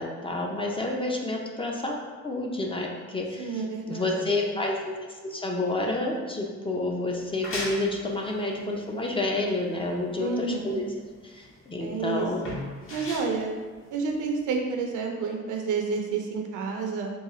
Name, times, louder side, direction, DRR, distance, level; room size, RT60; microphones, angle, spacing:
voice 1, 0.0-10.9 11.2-12.4, left 2 dB, 20° left, 0 dB, 0.4 m, -29 dB
voice 2, 3.4-4.5 10.2-10.8 11.8-12.6 12.9-13.5 13.9-17.1, right 4 dB, 80° right, 3 dB, 0.6 m, -30 dB
sound 1, 7.1-14.5, left 1 dB, 45° left, 0.9 m, -39 dB
3.8 x 2.3 x 3.0 m, 1.4 s
cardioid pair, 90°, 30 cm